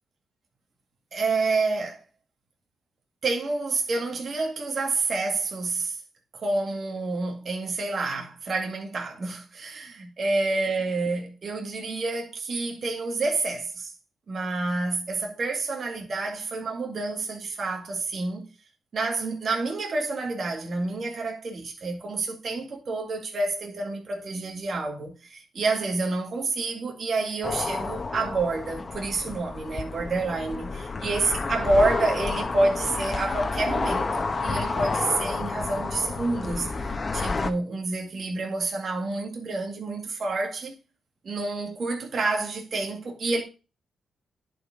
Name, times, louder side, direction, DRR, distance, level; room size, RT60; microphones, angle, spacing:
voice 1, 1.1-2.0 3.2-6.0 6.3-13.9 14.3-18.5 18.9-40.8 41.2-43.4, right 3 dB, 55° right, 2.2 m, -28 dB
sound 1, 27.4-37.5, left 3 dB, 40° left, 1.2 m, -30 dB
10.5 x 4.9 x 5.2 m
cardioid pair, 80°, 0 cm